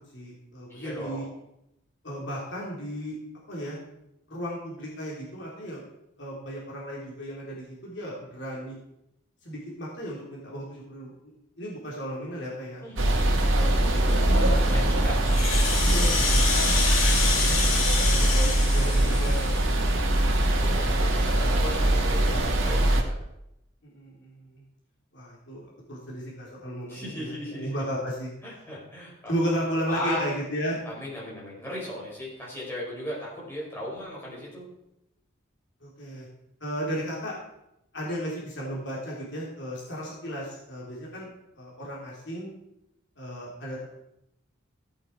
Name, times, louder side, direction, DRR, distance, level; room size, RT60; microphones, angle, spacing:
voice 1, 0.1-1.3 2.0-3.2 3.5-3.8 4.3-5.8 6.2-8.8 9.4-12.8 13.3-14.9 15.8-17.0 17.3-20.0 23.8-24.6 25.1-28.3 29.3-30.8 35.8-36.3 36.6-37.3 37.9-42.5 43.2-43.8, equal, 55° left, -5 dB, 3.3 m, -35 dB
voice 2, 0.7-1.3 12.8-13.2 14.7-15.2 20.5-23.2 26.9-27.8 28.4-29.3 29.9-30.2 30.9-34.6, left 1 dB, 10° left, -6 dB, 5.5 m, -37 dB
sound 1, 13.0-23.0, right 1 dB, 75° right, 1.9 m, -22 dB
Rattle (instrument), 15.2-19.9, left 4 dB, 85° left, 2.7 m, -28 dB
16.0 x 8.7 x 4.6 m, 0.84 s
head